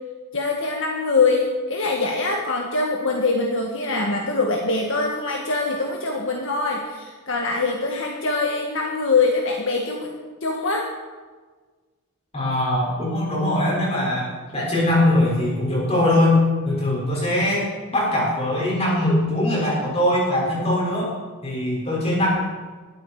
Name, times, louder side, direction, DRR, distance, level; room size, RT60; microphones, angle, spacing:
voice 1, 0.3-10.1 10.4-10.9, left 3 dB, 60° left, 1 dB, 1.8 m, -23 dB
voice 2, 12.3-21.1 21.4-22.3, left 1 dB, 30° left, -5 dB, 6.8 m, -21 dB
20.5 x 13.5 x 5.0 m, 1.4 s
head